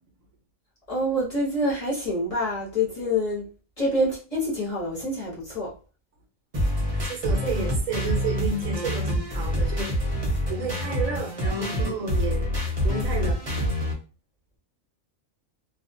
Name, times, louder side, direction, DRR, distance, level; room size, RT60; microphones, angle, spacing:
voice 1, 0.9-3.5 3.8-5.7, left 1 dB, 30° left, -6 dB, 0.9 m, -26 dB
sound 1, 6.5-13.9, equal, 30° right, 0.8 m, -26 dB
voice 2, 6.7-9.9 10.2-12.5 12.8-13.4, right 4 dB, 75° right, 2 dB, 1.1 m, -31 dB
2.6 x 2.3 x 2.6 m, 0.34 s
omnidirectional pair, 1.4 m